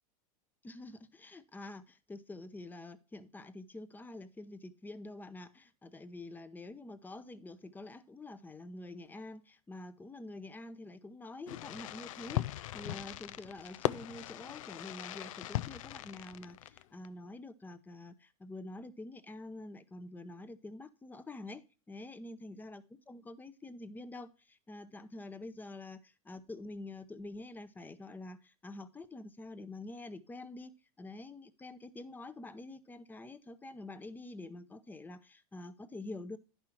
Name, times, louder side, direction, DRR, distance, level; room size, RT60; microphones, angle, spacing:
voice 1, 0.6-36.4, left 2 dB, 10° left, 0.7 m, -47 dB
Fireworks, 11.5-17.1, left 14 dB, 85° left, 0.5 m, -39 dB
10.5 x 5.6 x 4.4 m
supercardioid pair, 125°, 17 cm